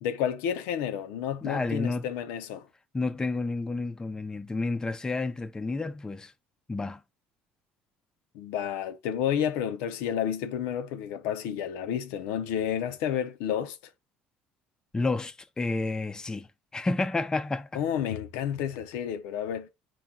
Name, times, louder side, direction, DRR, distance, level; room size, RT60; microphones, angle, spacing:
voice 1, 0.0-2.7 8.3-13.8 17.7-19.7, left 9 dB, 80° left, 0.6 m, -30 dB
voice 2, 1.4-2.1 2.9-6.3 6.7-7.0 14.9-16.5 16.7-17.7, left 3 dB, 15° left, 0.5 m, -30 dB
4.5 x 2.3 x 3.5 m
supercardioid pair, 85°, 4 cm